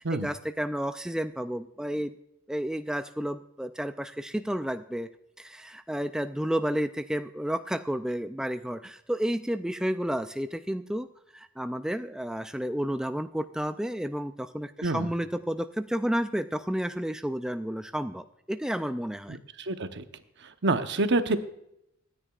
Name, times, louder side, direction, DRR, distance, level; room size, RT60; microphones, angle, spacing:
voice 1, 0.0-2.1 2.5-5.1 5.4-11.1 11.3-19.4, equal, 5° right, 9 dB, 0.3 m, -31 dB
voice 2, 19.3-20.0 20.6-21.4, right 2 dB, 60° right, 8 dB, 0.9 m, -27 dB
24.0 x 10.0 x 2.4 m, 0.79 s
head